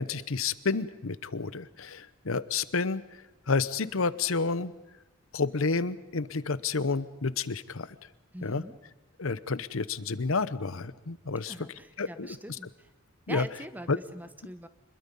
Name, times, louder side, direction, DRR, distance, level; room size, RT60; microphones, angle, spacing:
voice 1, 0.0-4.7 5.3-7.9 8.4-8.6 9.2-11.5 12.0-12.3 13.3-13.5 13.9-14.0, left 4 dB, 75° left, 16 dB, 0.9 m, -30 dB
voice 2, 8.3-8.8 11.4-12.9 13.3-14.7, right 1 dB, 10° right, 11 dB, 1.0 m, -43 dB
26.5 x 21.5 x 5.4 m, 1.1 s
head